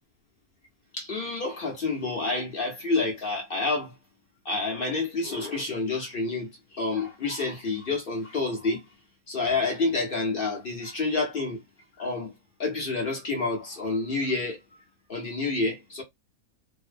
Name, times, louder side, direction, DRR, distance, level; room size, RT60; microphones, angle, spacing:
voice 1, 0.9-3.9 4.4-8.8 9.3-11.6 12.0-12.3 12.6-14.6 15.1-16.0, left 3 dB, 50° left, 0.7 m, -28 dB
2.6 x 2.1 x 2.5 m
omnidirectional pair, 1.6 m